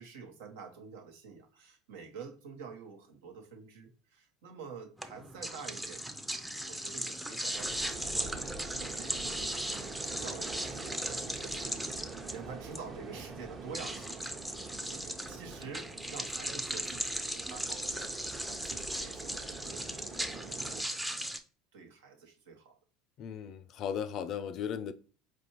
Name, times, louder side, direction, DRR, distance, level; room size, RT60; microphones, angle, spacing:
voice 1, 0.0-6.1 6.4-9.5 10.0-12.0 12.3-14.6 14.8-21.3 21.7-22.8, right 5 dB, 70° right, 0.8 m, -48 dB
sound 1, 5.0-21.4, right 1 dB, 5° right, 0.5 m, -38 dB
sound 2, 7.5-20.8, right 4 dB, 35° right, 0.8 m, -45 dB
voice 2, 23.2-24.9, left 8 dB, 50° left, 0.4 m, -36 dB
4.5 x 2.5 x 2.9 m
hypercardioid pair, 70°, 0 cm